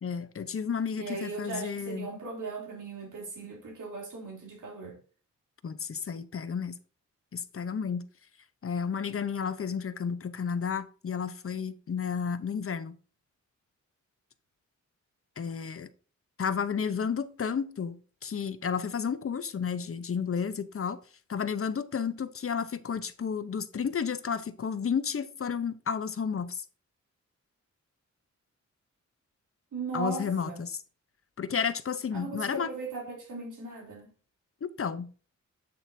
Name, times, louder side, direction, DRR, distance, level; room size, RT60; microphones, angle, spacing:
voice 1, 0.0-2.1 5.6-6.8 7.3-8.1 8.6-13.0 15.4-15.9 16.4-21.0 21.3-26.6 29.9-30.8 31.4-32.7 34.6-35.1, left 6 dB, 45° left, 0.8 m, -32 dB
voice 2, 1.0-5.0 29.7-30.6 32.1-34.1, right 4 dB, 85° right, 3.3 m, -38 dB
8.6 x 7.8 x 2.7 m
wide cardioid pair, 120°, 30 cm